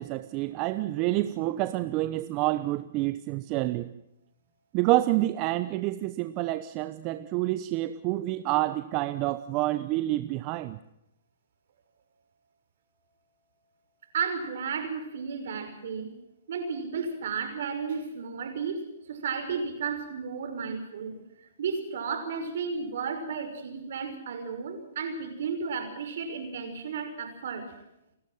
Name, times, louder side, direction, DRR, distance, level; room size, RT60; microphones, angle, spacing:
voice 1, 0.0-3.9 4.7-10.8, right 17 dB, 35° right, 12 dB, 0.9 m, -28 dB
voice 2, 14.1-16.1 16.5-21.2 21.6-27.7, right 5 dB, 65° right, 7 dB, 6.0 m, -33 dB
29.0 x 13.0 x 7.7 m, 0.82 s
hypercardioid pair, 145°, 0 cm